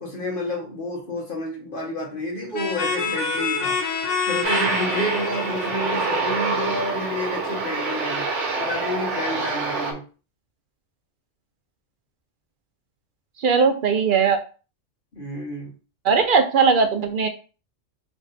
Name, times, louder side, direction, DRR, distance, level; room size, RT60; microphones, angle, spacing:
voice 1, 0.0-3.8 4.3-8.3 8.6-10.0 15.1-15.7, left 1 dB, 50° left, -1 dB, 1.2 m, -30 dB
sound 1, 2.5-7.1, left 4 dB, 80° left, 1.1 m, -28 dB
Aircraft, 4.4-9.9, right 4 dB, 80° right, 1.1 m, -26 dB
voice 2, 13.4-14.4 16.0-17.3, right 5 dB, 60° right, 6 dB, 0.6 m, -19 dB
3.3 x 2.6 x 4.0 m, 0.35 s
omnidirectional pair, 1.2 m